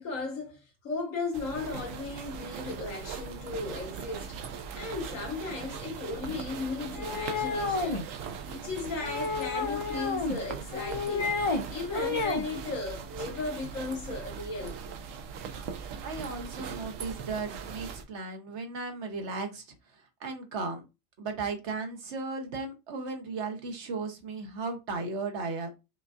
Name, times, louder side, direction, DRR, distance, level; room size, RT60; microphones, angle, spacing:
voice 1, 0.0-4.4 4.8-8.1 8.5-11.3 11.7-14.7, left 3 dB, 85° left, 1.6 m, -36 dB
sound 1, 1.3-18.0, right 6 dB, 85° right, 1.0 m, -40 dB
sound 2, 6.9-8.0 9.0-10.4 10.7-11.6 11.9-12.4, left 4 dB, 50° left, 0.3 m, -30 dB
voice 2, 16.0-19.7 20.2-20.8 21.2-25.7, right 4 dB, 60° right, 1.1 m, -35 dB
5.2 x 2.5 x 2.4 m
omnidirectional pair, 1.3 m